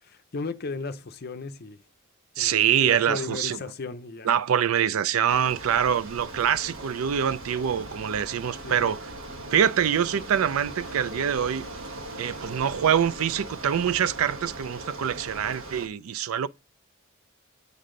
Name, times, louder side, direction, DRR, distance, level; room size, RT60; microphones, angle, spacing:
voice 1, 0.1-1.8 2.4-4.3 7.8-7.9 8.6-8.9, left 4 dB, 45° left, 0.6 m, -35 dB
voice 2, 2.4-3.6 4.2-9.0 9.5-11.7 12.2-16.5, right 8 dB, 85° right, 0.4 m, -25 dB
Bicycle, 5.3-15.9, right 1 dB, 70° right, 1.3 m, -39 dB
8.3 x 5.4 x 3.8 m
head